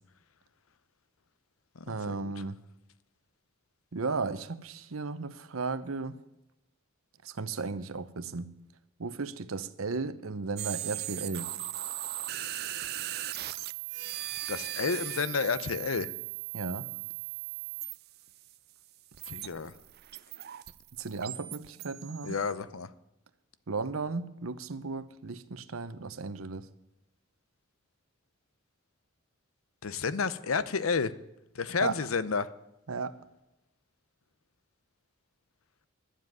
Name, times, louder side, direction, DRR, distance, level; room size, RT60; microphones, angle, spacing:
voice 1, 1.9-2.6 3.9-6.2 7.2-8.5 9.0-11.5 16.5-16.9 21.0-22.3 23.7-26.7 31.8-32.0 32.9-33.2, right 4 dB, 85° right, 0.8 m, -35 dB
sound 1, 10.6-18.6 19.1-22.5, right 14 dB, 50° right, 0.5 m, -38 dB
voice 2, 14.5-16.1 19.2-19.7 22.2-22.9 29.8-31.1 31.5-32.5, left 5 dB, 85° left, 0.7 m, -30 dB
11.5 x 7.5 x 9.3 m
head